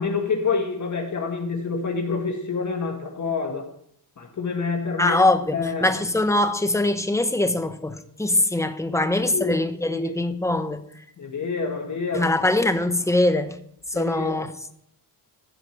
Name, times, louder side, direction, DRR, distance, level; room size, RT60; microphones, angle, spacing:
voice 1, 0.0-3.7 4.2-5.2 5.5-5.9 8.9-9.6 9.9-10.1 11.2-12.3 13.9-14.4, left 4 dB, 45° left, 1.8 m, -27 dB
voice 2, 5.0-10.8 12.1-13.6 13.9-14.5, left 2 dB, 5° left, 1.0 m, -22 dB
15.5 x 5.2 x 6.5 m
cardioid pair, 100°, 42 cm